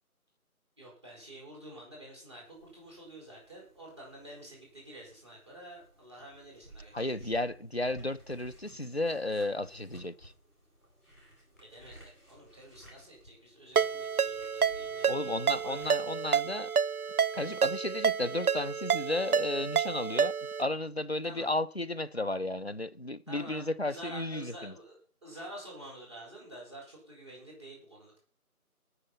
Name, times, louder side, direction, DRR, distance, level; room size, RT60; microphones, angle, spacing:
voice 1, 0.8-7.4 11.6-15.9 21.2-21.5 23.3-28.2, right 1 dB, 20° right, 4.5 m, -49 dB
sound 1, 2.4-16.5, right 1 dB, ahead, 4.5 m, -57 dB
voice 2, 6.9-10.3 15.1-16.7 17.3-24.7, left 2 dB, 45° left, 0.6 m, -33 dB
Ringtone, 13.8-20.6, right 7 dB, 75° right, 0.7 m, -29 dB
17.5 x 6.7 x 5.5 m
figure-of-eight pair, 175°, 44 cm